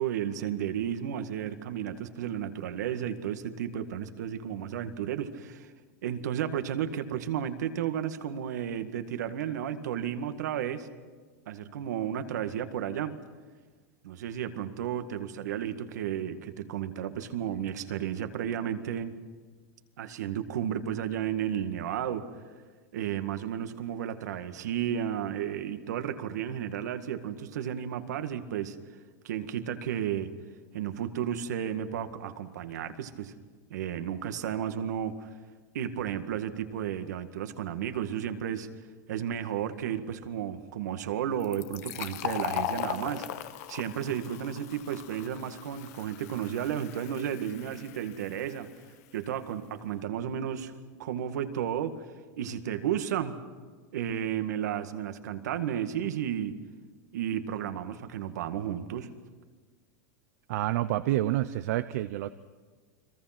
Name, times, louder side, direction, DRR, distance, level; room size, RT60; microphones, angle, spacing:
voice 1, 0.0-5.7 6.0-10.9 11.5-13.2 14.0-19.2 20.0-22.3 22.9-28.8 29.2-30.3 30.7-33.3 33.7-35.3 35.7-38.7 39.1-43.3 43.7-48.7 49.1-50.7 51.0-52.1 52.4-53.4 53.9-56.6 57.1-59.1, right 9 dB, 90° right, 8 dB, 1.9 m, -33 dB
Fill (with liquid), 41.4-48.8, left 12 dB, 65° left, 1.2 m, -38 dB
voice 2, 60.5-62.3, right 15 dB, 70° right, 11 dB, 0.8 m, -28 dB
30.0 x 22.5 x 6.1 m, 1.5 s
supercardioid pair, 140°, 9 cm